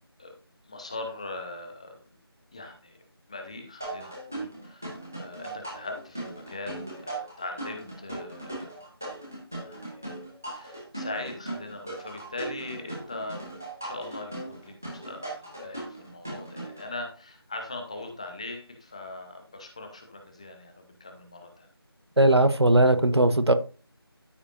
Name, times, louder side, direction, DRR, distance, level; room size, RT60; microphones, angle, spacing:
voice 1, 0.6-2.0 2.5-3.0 3.3-4.9 5.1-8.8 9.5-10.2 10.5-13.4 13.8-21.7, left 2 dB, 15° left, 4 dB, 0.8 m, -40 dB
sound 1, 3.8-16.9, right 2 dB, 5° right, 0.5 m, -38 dB
voice 2, 22.2-23.5, right 1 dB, 85° right, 11 dB, 1.0 m, -19 dB
13.0 x 5.0 x 2.6 m, 0.35 s
figure-of-eight pair, 165°, 13 cm